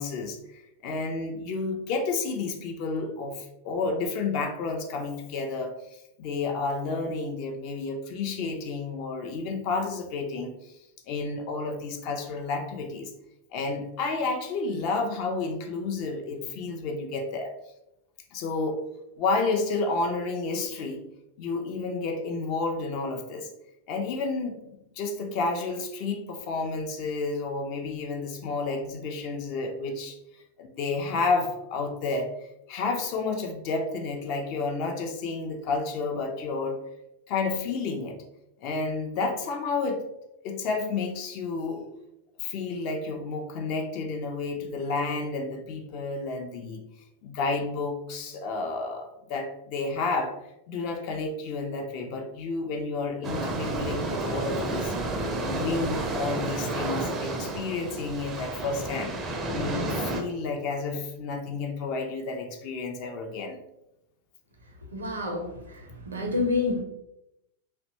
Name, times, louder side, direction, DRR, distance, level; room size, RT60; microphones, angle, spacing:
voice 1, 0.0-5.7 6.2-10.7 11.1-13.1 13.5-17.5 18.3-18.8 19.2-21.0 21.4-23.5 23.9-30.2 30.6-32.3 32.7-36.8 37.3-38.2 38.6-40.0 40.4-41.8 42.4-46.8 47.2-50.4 50.7-54.9 55.4-59.2 59.5-63.6, left 3 dB, 45° left, 3 dB, 0.4 m, -31 dB
sound 1, 53.2-60.2, right 2 dB, 25° right, 0.4 m, -31 dB
voice 2, 64.9-65.5 66.0-66.8, left 3 dB, 70° right, 2 dB, 0.5 m, -27 dB
2.6 x 2.1 x 2.8 m, 0.88 s
figure-of-eight pair, 90°, 0 cm